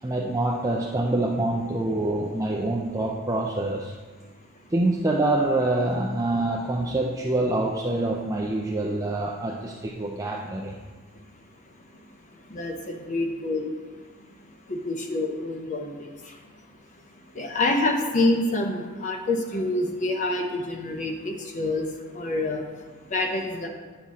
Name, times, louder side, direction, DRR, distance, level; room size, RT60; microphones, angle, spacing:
voice 1, 0.0-3.9 4.7-10.8, right 2 dB, 15° right, -1 dB, 0.4 m, -26 dB
voice 2, 12.5-13.7 14.7-16.1 17.4-21.8 22.1-22.6 23.1-23.7, left 2 dB, 35° left, 3 dB, 0.6 m, -27 dB
9.4 x 5.8 x 3.7 m, 1.4 s
head